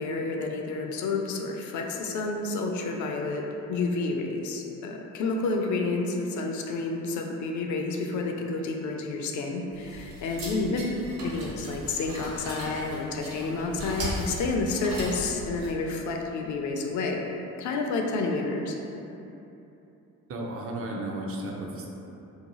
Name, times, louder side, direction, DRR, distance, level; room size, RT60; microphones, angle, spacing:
voice 1, 0.0-10.8 11.2-17.3 17.6-18.8, left 3 dB, 50° left, 1 dB, 0.4 m, -30 dB
sound 1, 9.7-15.7, right 1 dB, 65° right, 0.9 m, -38 dB
voice 2, 10.4-10.8 20.3-21.9, right 1 dB, 35° right, -1 dB, 0.5 m, -34 dB
2.8 x 2.2 x 2.9 m, 2.9 s
hypercardioid pair, 45°, 40 cm